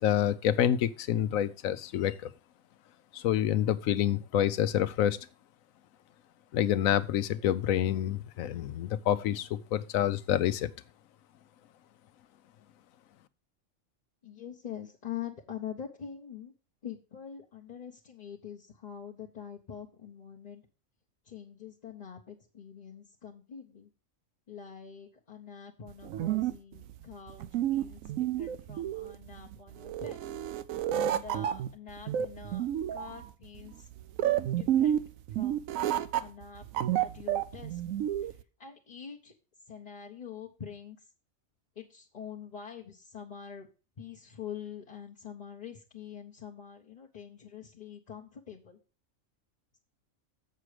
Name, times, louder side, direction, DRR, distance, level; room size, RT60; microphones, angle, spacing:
voice 1, 0.0-2.3 3.1-5.2 6.5-10.7, left 11 dB, 85° left, 1.0 m, -27 dB
voice 2, 14.2-16.5 16.8-20.6 21.2-23.9 24.5-30.2 30.9-33.9 34.2-35.0 35.3-35.7 36.1-36.7 37.0-37.8 38.2-39.3 39.7-41.1 41.8-43.7 44.0-48.8, left 8 dB, 35° left, 0.8 m, -45 dB
sound 1, 25.9-38.4, right 11 dB, 80° right, 1.0 m, -31 dB
7.5 x 6.8 x 4.8 m
omnidirectional pair, 1.4 m